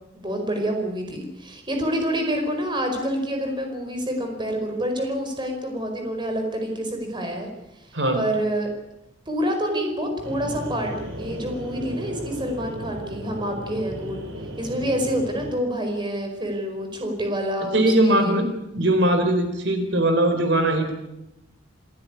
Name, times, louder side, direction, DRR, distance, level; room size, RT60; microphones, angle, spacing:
voice 1, 0.1-7.5 7.8-8.7 9.3-14.3 14.6-18.4, equal, 25° right, 4 dB, 4.8 m, -27 dB
sound 1, 10.2-15.6, right 1 dB, 80° right, 4.6 m, -35 dB
voice 2, 17.7-18.5 18.7-20.9, right 1 dB, 60° right, 6 dB, 4.0 m, -20 dB
28.0 x 15.5 x 9.7 m, 0.91 s
head